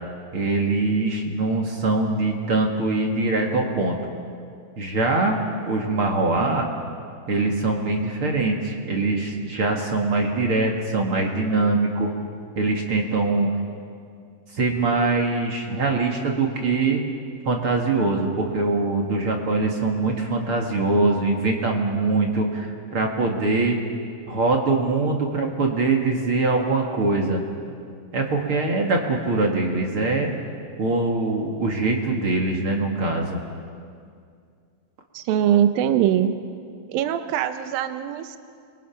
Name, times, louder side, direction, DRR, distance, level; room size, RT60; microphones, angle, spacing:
voice 1, 0.3-4.0 4.8-5.4 5.7-6.7 7.3-12.1 12.6-13.5 14.5-17.0 17.5-23.8 24.3-27.4 28.1-30.3 30.8-33.4, right 3 dB, 45° right, 1 dB, 2.4 m, -23 dB
voice 2, 35.1-36.3 36.9-38.4, right 10 dB, 80° right, 9 dB, 2.7 m, -22 dB
29.5 x 23.5 x 5.9 m, 2.3 s
omnidirectional pair, 4.1 m